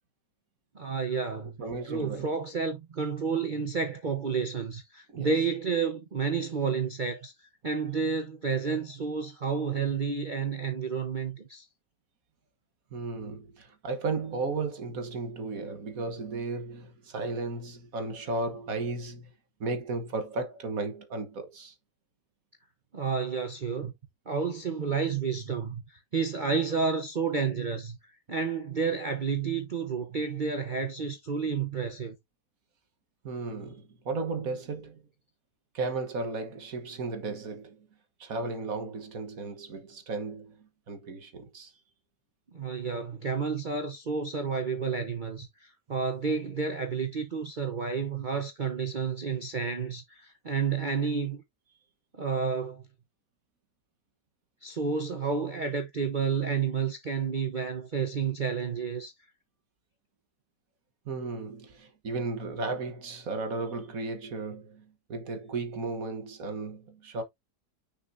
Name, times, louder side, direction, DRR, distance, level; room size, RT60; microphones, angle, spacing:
voice 1, 0.7-1.6 1.9-7.3 7.6-11.6 22.9-23.9 24.3-28.0 28.3-32.1 42.5-51.4 52.1-52.8 54.6-59.1, right 5 dB, 35° right, 0.9 m, -30 dB
voice 2, 1.6-2.3 5.1-5.3 12.9-19.3 19.6-21.7 33.2-35.0 35.7-37.9 38.2-41.7 61.0-67.2, right 3 dB, 55° right, 1.6 m, -35 dB
6.4 x 5.6 x 2.6 m
omnidirectional pair, 1.8 m